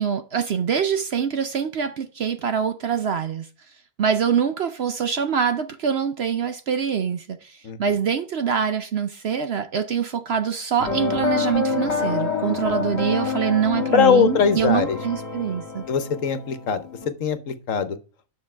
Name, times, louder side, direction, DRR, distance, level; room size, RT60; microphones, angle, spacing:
voice 1, 0.0-3.5 4.0-15.8, right 7 dB, 55° right, 0.8 m, -24 dB
sound 1, 10.8-17.1, left 4 dB, 50° left, 1.7 m, -27 dB
voice 2, 13.9-15.0 15.9-16.9 17.2-18.0, left 7 dB, 65° left, 1.3 m, -21 dB
9.7 x 6.3 x 4.4 m
omnidirectional pair, 1.5 m